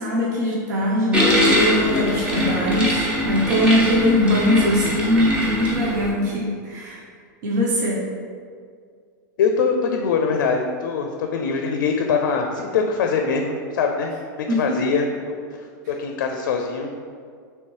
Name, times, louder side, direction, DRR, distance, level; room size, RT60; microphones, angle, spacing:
voice 1, 0.0-7.0 7.4-8.1 14.5-14.8, left 1 dB, 65° right, -3 dB, 0.7 m, -21 dB
sound 1, 1.1-6.1, left 1 dB, 10° right, 0.7 m, -22 dB
voice 2, 9.4-16.9, left 5 dB, 80° left, 3 dB, 0.4 m, -23 dB
3.2 x 3.1 x 4.4 m, 2.1 s
supercardioid pair, 145°, 10 cm